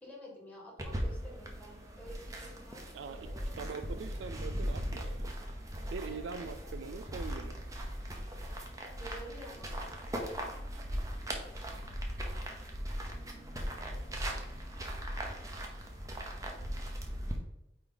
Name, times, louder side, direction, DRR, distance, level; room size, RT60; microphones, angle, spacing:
voice 1, 0.0-2.8 3.1-3.6 6.0-6.5 9.0-10.5 13.1-13.8, equal, 5° left, -3 dB, 1.7 m, -51 dB
sound 1, 0.8-17.4, equal, 15° right, 0.8 m, -39 dB
voice 2, 2.9-3.3 3.6-5.3 5.9-7.5, right 5 dB, 70° right, 11 dB, 0.4 m, -42 dB
8.7 x 3.1 x 3.9 m, 0.87 s
head